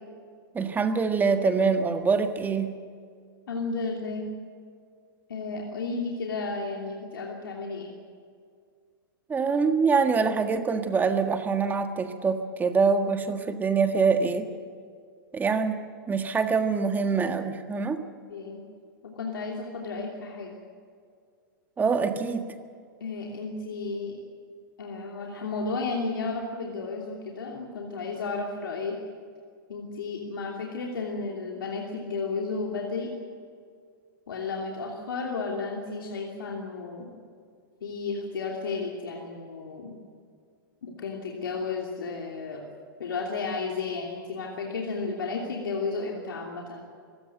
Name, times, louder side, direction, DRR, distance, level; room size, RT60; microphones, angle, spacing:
voice 1, 0.5-2.7 9.3-14.5 15.3-15.8 16.1-18.0 21.8-22.5, right 5 dB, 15° right, 7 dB, 1.6 m, -24 dB
voice 2, 3.5-4.3 5.3-7.9 18.3-18.6 19.0-20.5 23.0-24.2 24.8-29.0 29.7-33.1 34.3-37.1 37.8-40.0 40.8-42.7 43.0-46.8, left 4 dB, 85° left, -1 dB, 3.0 m, -33 dB
24.5 x 16.5 x 8.0 m, 2.2 s
hypercardioid pair, 125°, 12 cm